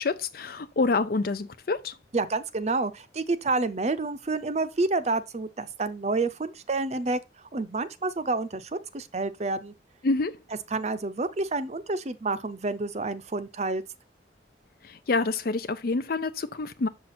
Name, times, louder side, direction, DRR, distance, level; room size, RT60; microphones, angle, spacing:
voice 1, 0.0-1.9 10.0-10.4 14.8-16.9, left 3 dB, 55° left, 0.5 m, -27 dB
voice 2, 2.1-7.2 7.5-9.7 10.7-13.8, right 3 dB, 40° right, 0.6 m, -29 dB
7.6 x 5.8 x 4.2 m
head